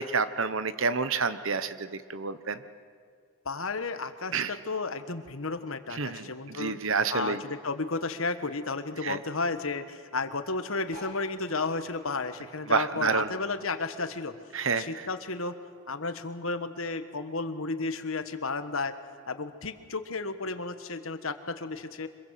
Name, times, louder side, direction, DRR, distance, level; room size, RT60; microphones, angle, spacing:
voice 1, 0.0-2.6 4.3-4.5 5.9-7.4 9.0-9.2 12.7-13.3 14.5-14.9, right 5 dB, 60° right, 13 dB, 1.1 m, -29 dB
voice 2, 3.4-6.8 7.1-14.4 14.7-15.6 15.9-18.9 19.3-22.1, left 3 dB, 65° left, 10 dB, 1.5 m, -33 dB
sound 1, 10.8-13.6 14.0-15.5 16.0-16.1 16.2-16.3 16.5-16.9 17.7-17.8, equal, 40° right, 6.3 m, -51 dB
25.5 x 22.5 x 7.6 m, 2.1 s
head